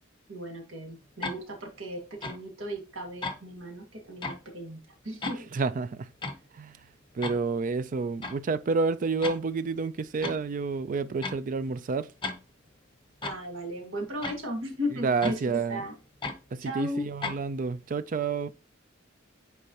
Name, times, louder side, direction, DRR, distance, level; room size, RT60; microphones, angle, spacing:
voice 1, 0.3-5.5 13.2-15.4 15.7-15.9 16.6-17.1, equal, 70° right, 2.0 m, -36 dB
sound 1, 1.2-1.4 2.2-2.4 3.2-3.4 4.2-4.4 5.2-5.4 6.2-6.4 7.2-7.4 8.2-8.4 9.2-9.4 10.2-10.4 11.2-11.4 12.2-12.4 13.2-13.4 14.2-14.4 15.2-15.4 16.2-16.4 17.2-17.4, left 3 dB, 25° left, 0.8 m, -34 dB
voice 2, 5.5-6.1 6.5-6.8 7.1-12.1 15.0-15.8 16.5-18.5, right 4 dB, 40° right, 0.4 m, -29 dB
8.3 x 4.6 x 2.9 m
head